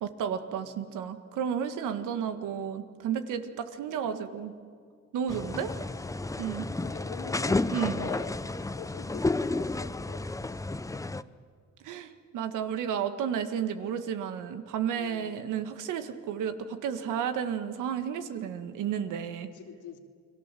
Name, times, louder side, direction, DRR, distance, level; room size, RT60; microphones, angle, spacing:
voice 1, 0.0-4.5 5.1-5.7 6.4-6.7 7.7-8.1 11.8-19.5, right 8 dB, 90° right, 9 dB, 1.8 m, -32 dB
voice 2, 2.2-2.7 3.8-4.1 6.8-11.3 14.9-15.6 19.4-20.0, left 7 dB, 85° left, 3 dB, 2.9 m, -45 dB
sound 1, 5.3-11.2, left 2 dB, 10° left, 0.6 m, -31 dB
29.5 x 21.0 x 7.6 m, 2.1 s
cardioid pair, 90°, 30 cm